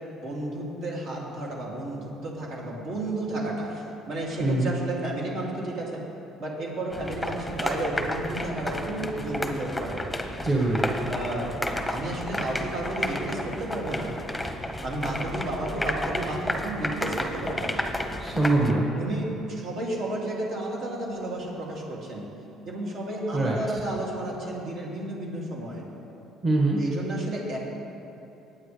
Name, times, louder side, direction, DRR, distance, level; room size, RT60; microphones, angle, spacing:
voice 1, 0.2-6.0 6.4-10.0 11.1-11.6 11.8-14.2 14.8-17.9 19.0-22.3 22.6-25.8 26.8-27.6, right 1 dB, 60° right, -4 dB, 2.8 m, -32 dB
voice 2, 4.4-4.7 10.4-10.9 18.2-18.9 23.3-23.6 26.4-26.8, right 2 dB, 30° right, -3 dB, 1.7 m, -23 dB
sound 1, 6.9-18.7, left 1 dB, 5° left, 0.9 m, -32 dB
19.0 x 8.8 x 3.4 m, 2.9 s
cardioid pair, 110°, 0 cm